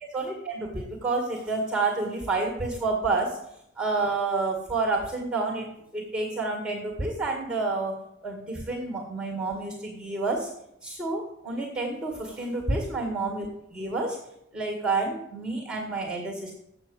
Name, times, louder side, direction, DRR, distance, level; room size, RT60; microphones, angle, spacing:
voice 1, 0.1-3.4 3.8-7.9 8.2-10.5 10.8-14.2 14.5-16.5, right 3 dB, 5° right, 1 dB, 1.9 m, -29 dB
7.7 x 6.3 x 8.1 m, 0.78 s
head